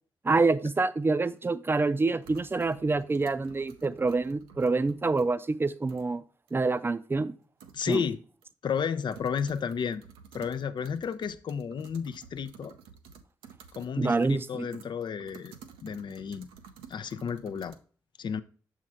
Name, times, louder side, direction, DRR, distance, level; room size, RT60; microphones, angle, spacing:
voice 1, 0.2-6.2 6.5-7.3 7.9-8.0 14.0-14.7, right 3 dB, 25° right, 0.5 m, -26 dB
sound 1, 1.4-1.5 2.2-5.2 5.7-6.1 6.5-6.6 7.1-7.2 7.6-8.2 8.4-8.5 8.8-13.9 14.2-17.7, right 7 dB, 90° right, 0.5 m, -52 dB
voice 2, 7.7-8.2 8.6-10.0 10.3-12.8 13.8-15.5 15.8-16.5 16.9-17.8 18.2-18.4, left 7 dB, 60° left, 0.5 m, -32 dB
6.2 x 3.7 x 4.4 m
hypercardioid pair, 40°, 9 cm